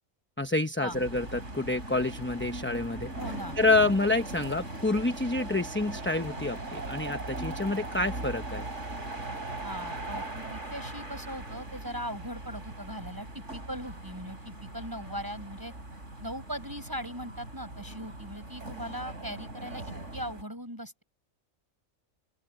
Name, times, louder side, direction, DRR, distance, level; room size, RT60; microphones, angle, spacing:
voice 1, 0.4-3.1 3.6-8.6, left 2 dB, 10° left, 0.7 m, -28 dB
sound 1, 0.9-20.4, right 2 dB, 60° right, 5.8 m, -40 dB
voice 2, 3.2-3.9 9.6-15.7 16.2-21.0, equal, 15° right, 7.3 m, -39 dB
open air
omnidirectional pair, 1.4 m